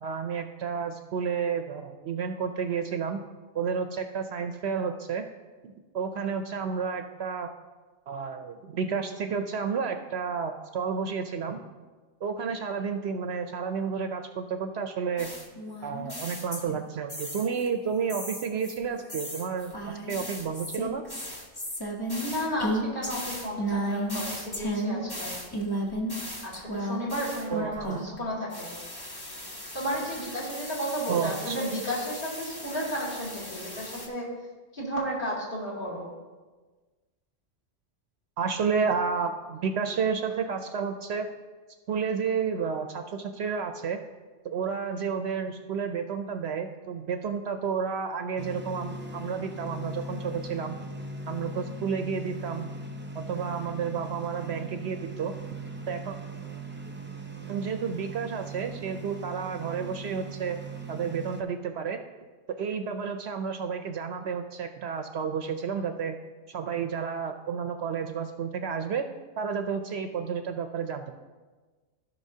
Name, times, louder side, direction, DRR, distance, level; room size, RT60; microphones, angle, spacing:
voice 1, 0.0-3.2 3.5-5.2 5.6-7.5 8.1-11.6 12.2-15.3 15.8-21.0 27.5-28.1 31.1-31.6 38.4-41.3 41.9-44.0 44.4-50.8 51.3-52.7 53.1-55.3 55.9-56.2 57.5-60.6 60.9-62.0 62.6-66.2 66.5-69.1 69.4-71.0, right 6 dB, 65° right, 7 dB, 0.8 m, -31 dB
sound 1, 15.2-17.7 18.1-28.2 28.5-34.1, right 1 dB, 20° left, 0.9 m, -35 dB
voice 2, 22.2-25.3 26.4-28.7 29.7-34.3 34.7-36.1, equal, 45° left, -5 dB, 2.7 m, -33 dB
sound 2, 48.4-61.4, right 2 dB, 15° right, 0.5 m, -39 dB
16.0 x 5.7 x 2.8 m, 1.3 s
omnidirectional pair, 1.3 m